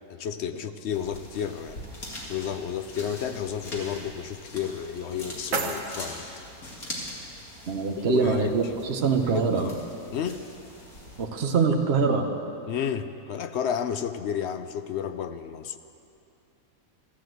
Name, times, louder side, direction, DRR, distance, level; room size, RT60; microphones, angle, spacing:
voice 1, 0.1-1.8 2.3-6.2 8.1-8.5 9.3-9.8 10.1-10.4 12.7-15.8, left 8 dB, 60° left, 10 dB, 0.8 m, -31 dB
sound 1, 0.9-11.3, left 1 dB, 80° left, 2.8 m, -42 dB
sound 2, 4.8-6.8, right 3 dB, 65° right, 1.6 m, -34 dB
voice 2, 7.7-9.7 11.2-12.3, right 5 dB, 50° right, 3 dB, 1.2 m, -24 dB
14.0 x 11.5 x 7.8 m, 2.6 s
omnidirectional pair, 1.5 m